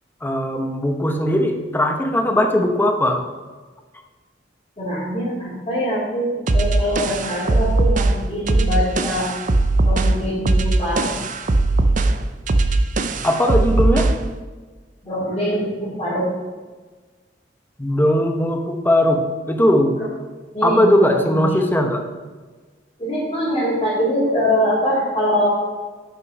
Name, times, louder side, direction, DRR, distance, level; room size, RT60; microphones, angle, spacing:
voice 1, 0.2-3.2 13.2-14.1 17.8-19.2 19.5-20.0 20.6-22.0, left 1 dB, 10° left, 4 dB, 0.8 m, -18 dB
voice 2, 4.8-9.3 9.8-11.1 15.0-16.3 20.5-21.7 23.0-25.5, equal, 30° left, -10 dB, 2.6 m, -23 dB
sound 1, 6.5-14.3, right 2 dB, 45° right, 0.5 m, -19 dB
6.4 x 6.0 x 5.3 m, 1.4 s
head